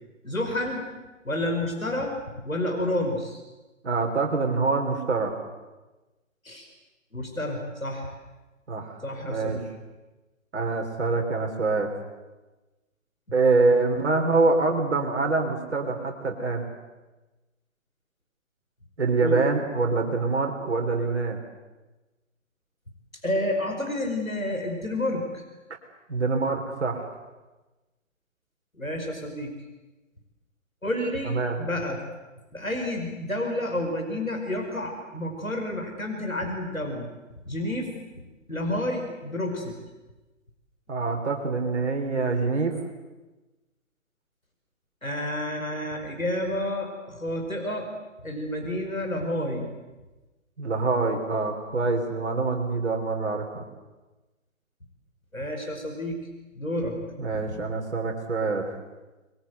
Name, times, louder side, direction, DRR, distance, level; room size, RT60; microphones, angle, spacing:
voice 1, 0.2-0.9 1.2-2.1 2.4-3.4 6.4-6.7 7.1-8.1 9.0-9.6 19.2-19.4 23.2-25.4 28.8-29.5 30.8-32.0 32.5-37.1 37.5-37.9 38.5-39.8 45.0-47.9 48.2-49.7 55.3-56.2 56.5-57.0, left 1 dB, 90° left, 2 dB, 5.0 m, -30 dB
voice 2, 3.8-5.4 8.7-8.9 9.2-9.6 10.5-11.9 13.3-16.6 19.0-21.4 26.1-27.1 31.2-31.6 40.9-42.8 50.6-53.6 57.2-58.7, right 3 dB, 55° right, 3 dB, 3.5 m, -25 dB
26.5 x 22.0 x 8.0 m, 1.1 s
figure-of-eight pair, 135°, 40 cm